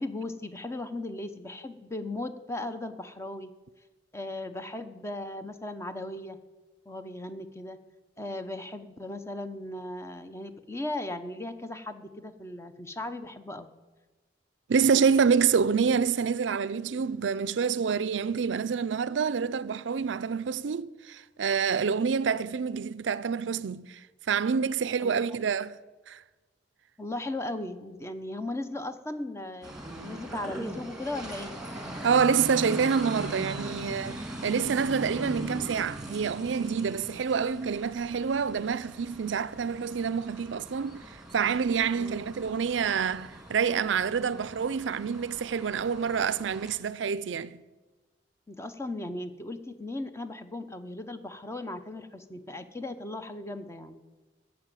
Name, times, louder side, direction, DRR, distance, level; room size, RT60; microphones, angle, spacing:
voice 1, 0.0-3.5 4.1-6.4 6.9-7.8 8.2-13.7 25.0-25.2 27.0-31.6 41.9-42.3 48.5-54.0, left 2 dB, 15° left, 0.8 m, -37 dB
voice 2, 14.7-24.0 24.3-25.8 26.1-26.2 32.0-47.6, right 6 dB, 90° right, 0.5 m, -27 dB
sound 1, 29.6-46.8, right 1 dB, 5° right, 1.8 m, -41 dB
14.0 x 7.0 x 9.1 m
head